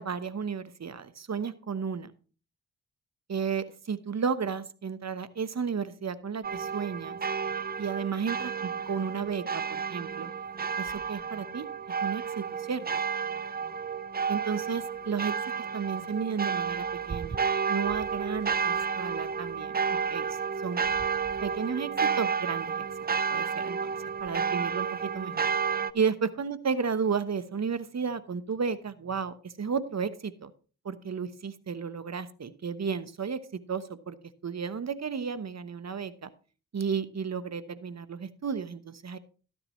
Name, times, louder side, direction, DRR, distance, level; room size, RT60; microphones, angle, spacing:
voice 1, 0.0-2.1 3.3-7.2 7.8-10.3 10.8-11.7 12.0-12.8 14.3-15.3 15.7-17.4 17.7-19.8 20.1-20.8 21.4-22.9 23.3-24.0 24.2-25.5 25.9-30.5 30.8-33.4 33.7-34.2 34.4-36.3 36.7-39.2, right 6 dB, 45° right, 14 dB, 1.1 m, -33 dB
sound 1, 6.4-25.9, right 6 dB, 25° right, 0.5 m, -31 dB
13.0 x 9.8 x 3.1 m, 0.37 s
supercardioid pair, 50°, 36 cm